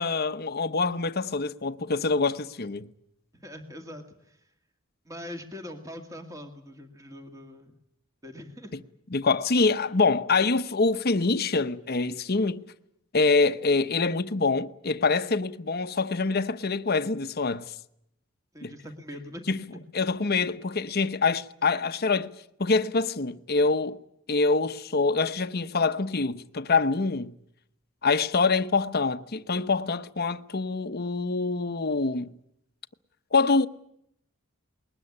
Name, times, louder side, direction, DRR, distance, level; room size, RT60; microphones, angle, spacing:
voice 1, 0.0-2.9 9.1-12.6 13.1-17.7 18.6-18.7 19.5-19.6 19.9-22.3 22.6-24.0 24.3-27.3 28.0-32.3 33.3-33.7, left 4 dB, 50° left, 0.9 m, -25 dB
voice 2, 3.3-4.4 5.1-7.7 8.2-8.7 18.5-19.5, left 1 dB, 15° right, 2.1 m, -42 dB
21.0 x 19.5 x 9.8 m
head